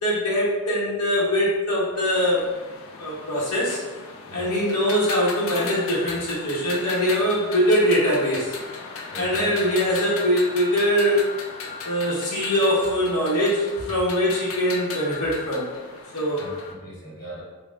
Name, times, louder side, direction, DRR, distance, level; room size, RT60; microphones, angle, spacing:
voice 1, 0.0-2.5 3.0-3.8 4.3-8.5 9.2-11.3 11.8-15.7 16.1-16.4, equal, 80° left, -7 dB, 0.9 m, -22 dB
sound 1, 1.9-16.7, left 4 dB, 65° left, 0.5 m, -37 dB
voice 2, 4.2-4.6 9.1-9.9 16.4-17.4, right 1 dB, 40° left, -6 dB, 1.2 m, -39 dB
5.4 x 2.2 x 2.4 m, 1.2 s
head